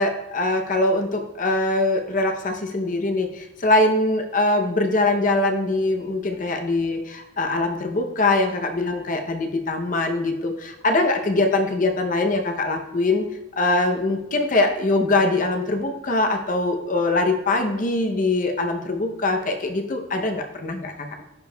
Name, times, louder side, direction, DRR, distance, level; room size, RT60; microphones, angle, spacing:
voice 1, 0.0-13.3 13.6-21.2, left 2 dB, 45° left, 4 dB, 0.6 m, -22 dB
10.5 x 4.6 x 2.2 m, 0.93 s
head